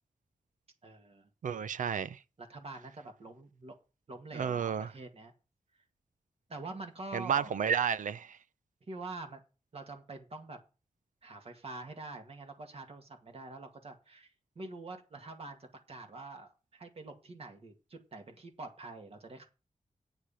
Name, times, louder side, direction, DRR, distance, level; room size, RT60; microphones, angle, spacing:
voice 1, 0.8-1.3 2.4-3.7 4.1-5.3 6.5-7.6 8.9-9.4 9.7-10.6 11.2-19.5, right 2 dB, 50° right, 2.0 m, -46 dB
voice 2, 1.4-2.2 4.3-4.9 7.1-8.4, right 7 dB, 90° right, 0.6 m, -31 dB
8.6 x 6.6 x 7.4 m
wide cardioid pair, 150°, 13 cm